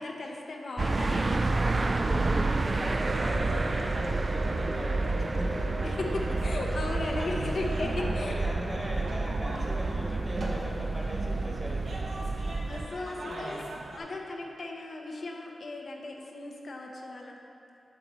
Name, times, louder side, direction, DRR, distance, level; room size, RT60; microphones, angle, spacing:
voice 1, 0.0-2.2 5.8-8.5 12.7-17.4, left 2 dB, 60° left, 0 dB, 0.7 m, -37 dB
sound 1, 0.8-12.9, right 3 dB, 35° right, 0.3 m, -30 dB
voice 2, 2.1-5.1 5.5-5.7 6.2-6.6 7.1-7.5 7.9-12.0 13.2-13.6, equal, 10° right, -3 dB, 1.4 m, -40 dB
sound 2, 2.8-15.6, equal, 5° left, 1.0 m, -41 dB
sound 3, 4.6-14.0, right 1 dB, 75° right, 1.1 m, -41 dB
7.2 x 6.9 x 4.2 m, 2.7 s
wide cardioid pair, 95°, 0 cm